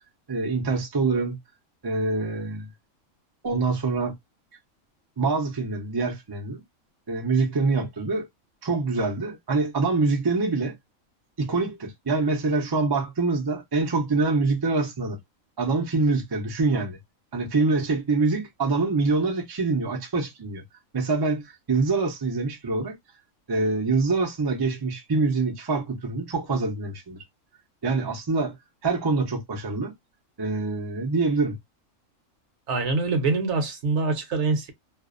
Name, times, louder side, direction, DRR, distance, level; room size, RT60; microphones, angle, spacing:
voice 1, 0.3-1.4 1.8-2.7 3.4-4.1 5.2-6.6 7.1-8.3 8.6-10.8 11.4-15.2 15.6-17.0 17.3-20.6 20.9-23.0 23.5-27.2 27.8-28.6 28.8-29.9 30.4-31.6, right 3 dB, 35° right, 0.4 m, -25 dB
voice 2, 32.7-34.7, right 3 dB, 60° right, 1.0 m, -24 dB
2.5 x 2.0 x 2.3 m
omnidirectional pair, 1.4 m